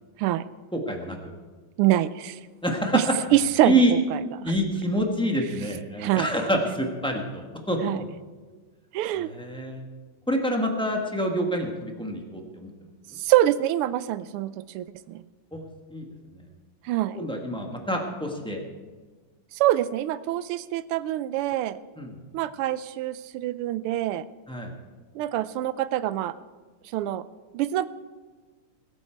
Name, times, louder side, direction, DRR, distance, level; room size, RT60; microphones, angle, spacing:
voice 1, 0.7-1.2 2.6-3.0 3.6-3.9 4.4-7.8 9.1-9.8 10.3-12.7 15.5-15.6 15.9-16.0 16.3-16.4 17.2-18.6 22.0-22.2 24.5-24.7, equal, 5° left, 1 dB, 1.0 m, -27 dB
voice 2, 1.8-2.4 2.9-3.1 3.3-4.5 6.0-6.3 7.8-8.0 8.9-9.3 13.2-15.2 16.8-17.2 19.5-21.8 22.3-24.2 25.1-26.3 26.9-27.2 27.5-27.9, right 13 dB, 85° right, 15 dB, 1.5 m, -25 dB
20.5 x 8.6 x 4.5 m, 1.4 s
omnidirectional pair, 2.4 m